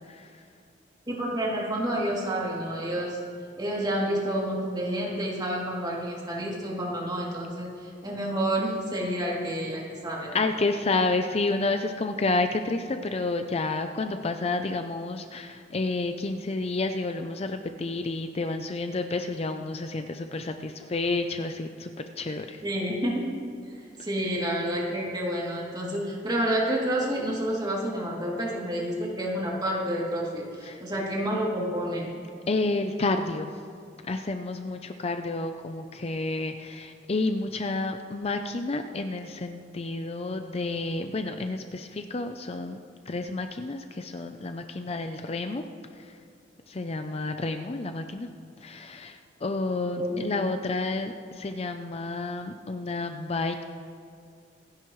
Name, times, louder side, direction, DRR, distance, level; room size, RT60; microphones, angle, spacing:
voice 1, 1.1-3.2 3.6-10.4 22.6-23.2 24.0-32.1 50.0-50.2, right 1 dB, 25° right, -5 dB, 2.8 m, -29 dB
voice 2, 10.3-21.9 22.2-22.6 30.6-30.8 32.5-33.6 34.1-42.8 43.1-45.6 46.0-46.2 46.7-48.3 48.6-53.6, left 3 dB, 35° left, 7 dB, 0.5 m, -30 dB
26.0 x 10.5 x 3.2 m, 2.3 s
head